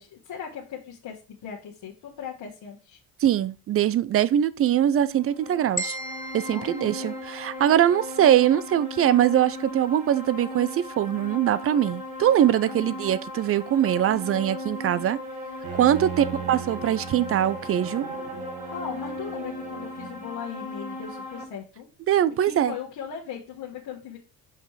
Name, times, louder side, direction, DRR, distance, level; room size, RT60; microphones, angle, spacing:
voice 1, 0.0-3.0 6.5-7.1 12.6-12.9 14.0-14.4 14.8-15.1 15.8-16.5 18.7-21.9 22.3-24.2, left 7 dB, 50° left, 1.4 m, -39 dB
voice 2, 3.2-6.0 6.3-15.2 15.7-18.1 22.1-22.7, right 11 dB, 30° right, 0.4 m, -22 dB
sound 1, 5.1-21.4, left 2 dB, 15° right, 2.6 m, -37 dB
sound 2, 5.8-8.0, equal, 15° left, 1.5 m, -36 dB
Bowed string instrument, 15.6-20.4, right 9 dB, 75° right, 1.3 m, -38 dB
5.9 x 5.1 x 3.2 m
hypercardioid pair, 60°, 47 cm